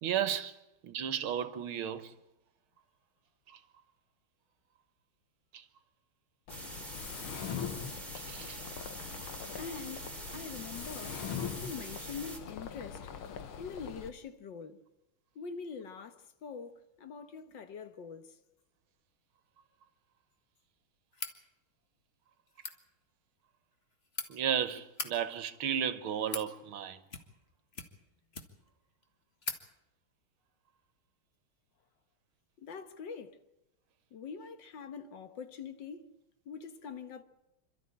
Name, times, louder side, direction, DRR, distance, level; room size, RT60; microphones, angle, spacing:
voice 1, 0.0-0.6 0.8-2.2 3.5-3.6 5.5-5.6 8.3-8.6 10.3-10.4 24.3-27.0, right 9 dB, 80° right, 2.0 m, -34 dB
Mechanisms, 6.5-14.1, left 7 dB, 80° left, 2.1 m, -42 dB
sound 1, 6.5-12.4, right 2 dB, 20° right, 3.1 m, -45 dB
voice 2, 9.6-11.2 11.6-13.0 13.6-14.8 15.4-16.1 16.4-16.7 17.0-18.3 32.6-33.4 34.1-36.0 36.5-37.2, left 6 dB, 60° left, 1.8 m, -43 dB
sound 2, 21.1-21.4 22.5-22.8 23.7-24.3 24.8-25.1 25.9-26.5 27.1-27.4 27.7-28.7 29.0-29.1 29.4-29.6, left 4 dB, 30° left, 1.8 m, -40 dB
27.0 x 13.0 x 8.7 m
omnidirectional pair, 2.3 m